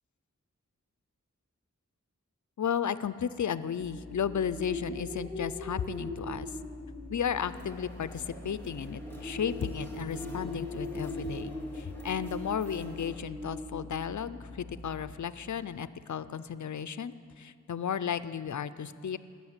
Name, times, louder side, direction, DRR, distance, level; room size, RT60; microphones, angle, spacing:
voice 1, 2.6-6.5 7.1-19.2, left 8 dB, 70° left, 15 dB, 0.5 m, -34 dB
sound 1, 3.8-15.1, left 1 dB, 20° right, 4.5 m, -41 dB
sound 2, 7.3-13.2, left 2 dB, 5° left, 2.2 m, -47 dB
13.0 x 7.3 x 9.5 m, 2.3 s
wide cardioid pair, 50°, 31 cm